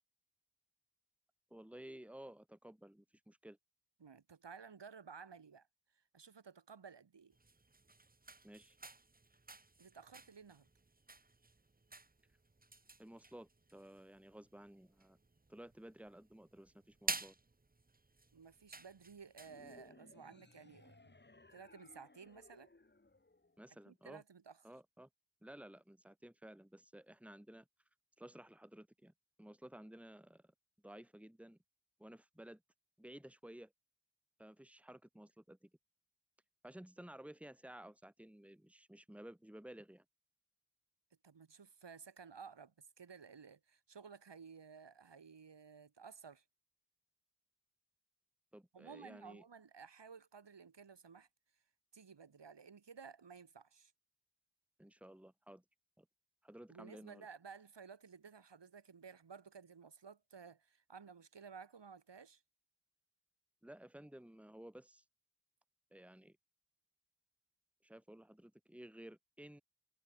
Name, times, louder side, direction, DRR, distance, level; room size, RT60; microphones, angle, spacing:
voice 1, 1.5-3.6 8.4-8.8 13.0-15.2 15.5-17.4 23.6-24.2 24.6-25.1 25.4-27.7 28.2-29.1 29.4-30.5 30.8-31.6 32.0-32.6 33.0-33.7 34.4-35.7 36.6-40.0 48.5-49.4 54.8-55.6 56.0-56.1 56.4-57.3 63.6-65.0 65.9-66.4 67.8-69.6, right 1 dB, 5° right, 2.6 m, -55 dB
voice 2, 4.0-5.7 5.9-7.3 9.8-10.7 18.3-21.2 21.5-22.7 23.9-24.6 41.2-46.4 48.7-51.3 51.9-53.9 56.7-62.4, right 6 dB, 80° right, 4.9 m, -55 dB
sound 1, 7.3-19.9, right 3 dB, 20° right, 1.3 m, -50 dB
sound 2, 19.4-23.9, left 2 dB, 25° left, 3.3 m, -63 dB
wide cardioid pair, 115°, 42 cm